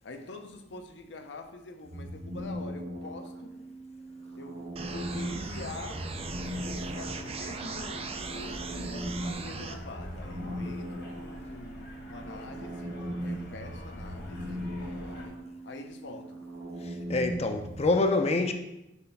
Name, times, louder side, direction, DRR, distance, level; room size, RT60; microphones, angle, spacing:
voice 1, 0.0-3.7 4.4-6.1 6.9-16.5, left 2 dB, 75° left, 0.7 m, -45 dB
sound 1, 1.8-17.9, equal, 70° right, 0.9 m, -39 dB
sound 2, 4.7-15.3, left 1 dB, 60° left, 1.3 m, -45 dB
sound 3, 4.8-9.8, right 4 dB, 35° right, 0.4 m, -39 dB
voice 2, 16.8-18.5, left 2 dB, 35° left, 0.5 m, -26 dB
5.8 x 3.3 x 5.6 m
head